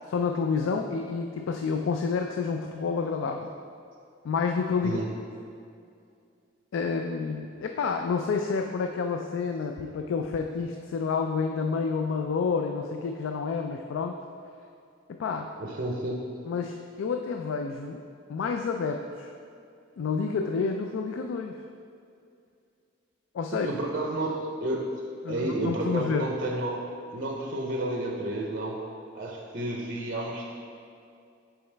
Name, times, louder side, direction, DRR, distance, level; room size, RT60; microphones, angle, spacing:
voice 1, 0.1-3.5 4.2-5.0 6.7-14.2 15.1-15.5 16.5-18.0 18.3-19.3 20.0-21.5 23.3-23.7 25.2-26.3, left 5 dB, 85° left, 4 dB, 0.3 m, -29 dB
voice 2, 15.6-16.2 23.5-24.9 25.3-26.8 27.1-28.8 29.1-30.5, right 1 dB, 45° right, -1 dB, 0.6 m, -31 dB
6.9 x 4.7 x 3.3 m, 2.4 s
head